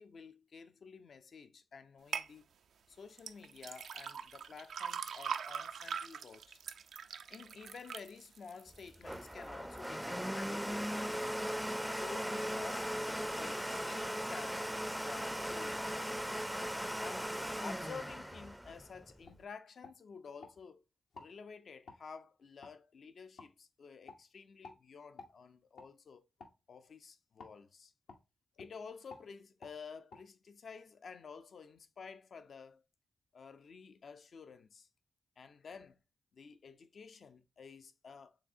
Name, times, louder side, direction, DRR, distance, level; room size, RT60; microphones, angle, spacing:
voice 1, 0.0-2.5 2.9-6.6 7.3-11.6 11.9-14.6 15.0-20.8 21.2-26.2 26.7-27.9 28.6-32.8 33.3-34.9 35.4-36.0 36.3-38.4, left 5 dB, 70° left, 0.5 m, -51 dB
sound 1, 2.1-2.3 3.2-9.3 9.8-10.3 10.8-10.9, right 7 dB, 85° right, 0.3 m, -42 dB
Domestic sounds home sounds, 8.7-19.4, equal, 5° right, 0.4 m, -38 dB
sound 2, 18.7-18.8 19.2-19.4 19.8-20.5 21.1-21.3 21.9-22.0 22.6-22.7 23.4-23.5 24.0-24.2 24.6-24.8 25.2-25.3 25.7-25.9 26.4-26.6 27.4-27.5 28.1-28.2 28.5-28.7 29.1-29.3 29.6-29.7 30.1-30.2, left 3 dB, 85° left, 0.9 m, -53 dB
4.9 x 3.4 x 2.6 m
cardioid pair, 50°, 0 cm